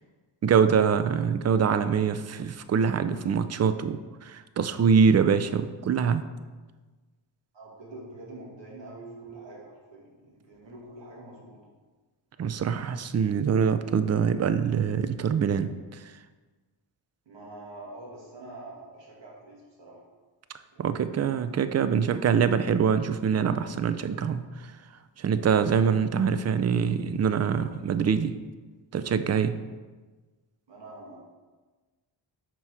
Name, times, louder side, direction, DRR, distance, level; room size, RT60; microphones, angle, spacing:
voice 1, 0.4-6.2 12.4-16.0 20.8-24.7 25.2-28.4 28.9-29.6, right 6 dB, 35° right, 11 dB, 0.4 m, -24 dB
voice 2, 7.5-11.6 17.3-20.0 20.7-21.4 30.7-31.2, right 2 dB, 60° right, -3 dB, 2.1 m, -45 dB
5.6 x 4.6 x 4.8 m, 1.3 s
cardioid pair, 75°, 50 cm